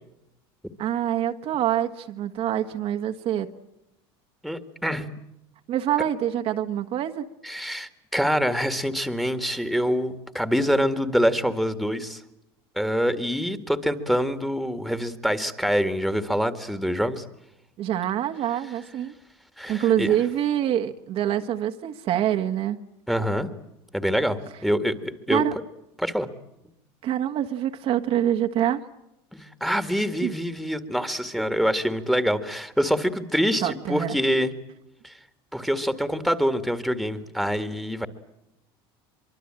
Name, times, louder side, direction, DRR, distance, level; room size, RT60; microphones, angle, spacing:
voice 1, 0.8-3.5 5.7-7.2 17.8-19.1 19.7-22.8 25.3-25.5 27.0-28.8 30.2-30.3 33.6-34.2, right 11 dB, 50° right, 5 dB, 1.5 m, -25 dB
voice 2, 4.4-5.1 7.4-12.2 12.8-17.2 19.6-20.1 23.1-23.5 23.9-25.4 26.0-26.3 29.3-34.5 35.0-35.1 35.5-38.1, equal, ahead, 10 dB, 1.9 m, -25 dB
24.0 x 24.0 x 8.9 m, 0.86 s
supercardioid pair, 115°, 13 cm